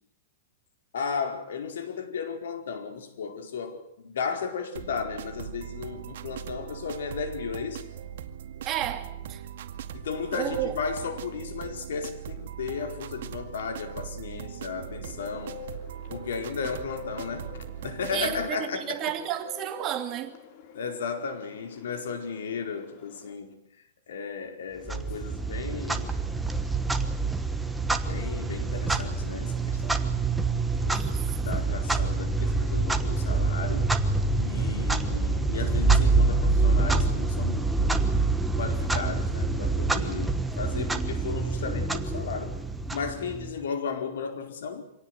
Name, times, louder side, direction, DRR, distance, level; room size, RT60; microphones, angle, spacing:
voice 1, 0.9-7.9 9.9-15.6 16.1-17.5 17.8-19.1 20.7-23.5 24.1-26.2 28.0-30.1 30.8-33.9 34.4-38.1 38.6-42.6 42.9-44.8, left 5 dB, 85° left, 4.8 m, -35 dB
sound 1, 4.8-18.5, right 9 dB, 65° right, 2.0 m, -40 dB
voice 2, 8.7-9.4 10.3-10.8 18.1-20.3 30.9-31.5, right 11 dB, 25° right, 2.5 m, -32 dB
Bird, 15.0-23.3, left 7 dB, 40° left, 3.0 m, -47 dB
Clock, 24.9-43.6, right 3 dB, 5° right, 1.3 m, -26 dB
25.5 x 18.5 x 9.7 m
supercardioid pair, 165°, 0 cm